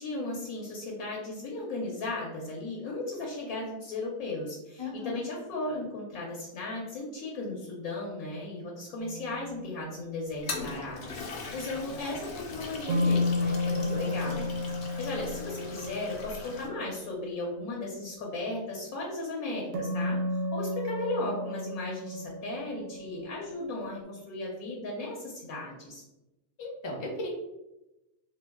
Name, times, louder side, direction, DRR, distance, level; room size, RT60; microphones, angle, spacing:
voice 1, 0.0-14.4 14.8-26.0, left 2 dB, 80° left, -3 dB, 1.2 m, -36 dB
voice 2, 4.8-5.2 13.8-14.5 26.6-27.3, left 2 dB, 30° left, -1 dB, 0.5 m, -37 dB
sound 1, 9.0-10.4 12.9-17.3 19.7-24.0, left 2 dB, 80° right, 1.0 m, -33 dB
Toilet flush, 10.3-16.7, left 3 dB, 55° left, 0.8 m, -41 dB
3.0 x 2.7 x 3.5 m, 0.95 s
omnidirectional pair, 1.5 m